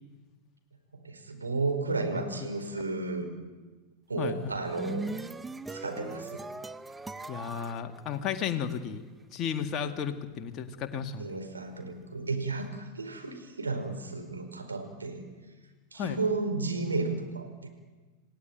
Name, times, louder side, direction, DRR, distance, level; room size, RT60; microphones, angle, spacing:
voice 1, 1.0-3.3 4.1-5.1 5.7-6.4 11.2-15.2 15.9-17.7, right 3 dB, 75° right, 6 dB, 4.7 m, -33 dB
voice 2, 4.2-4.6 7.3-9.0 9.3-11.3 15.9-16.2, left 8 dB, 30° left, 5 dB, 2.0 m, -33 dB
sound 1, 4.4-8.8, right 2 dB, 10° right, 0.9 m, -40 dB
28.0 x 18.0 x 9.2 m, 1.3 s
figure-of-eight pair, 90°, 0 cm